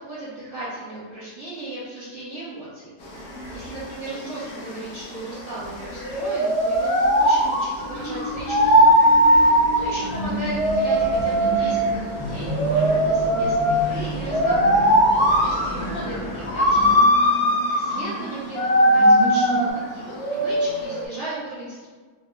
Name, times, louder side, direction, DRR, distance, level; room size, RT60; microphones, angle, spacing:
voice 1, 0.1-2.9 3.5-8.7 9.7-17.0 17.7-21.9, right 2 dB, 35° right, -12 dB, 1.3 m, -36 dB
sound 1, 3.0-21.1, equal, 75° left, 1.0 m, -20 dB
sound 2, 7.4-19.7, right 1 dB, 75° right, 1.1 m, -33 dB
sound 3, 7.5-17.0, left 1 dB, 45° left, 0.4 m, -37 dB
2.8 x 2.3 x 3.2 m, 1.4 s
omnidirectional pair, 1.7 m